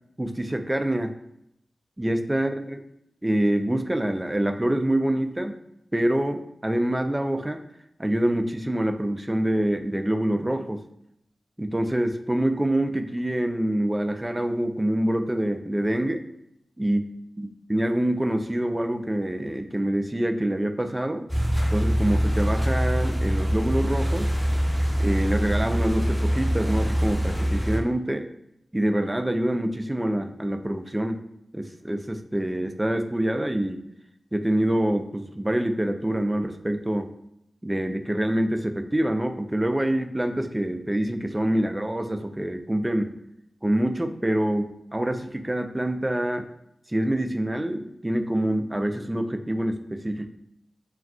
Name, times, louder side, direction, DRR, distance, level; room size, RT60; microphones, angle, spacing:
voice 1, 0.2-1.1 2.0-2.8 3.2-5.6 5.9-7.6 8.0-10.8 11.6-16.3 16.8-17.0 17.4-21.3 21.7-24.3 25.0-28.3 28.7-31.2 31.5-33.8 34.3-37.1 37.6-43.1 43.6-46.5 46.9-50.3, right 1 dB, 20° right, 6 dB, 0.3 m, -26 dB
sound 1, 21.3-27.8, equal, 5° left, 1.3 m, -24 dB
2.3 x 2.3 x 3.6 m, 0.78 s
cardioid pair, 50°, 0 cm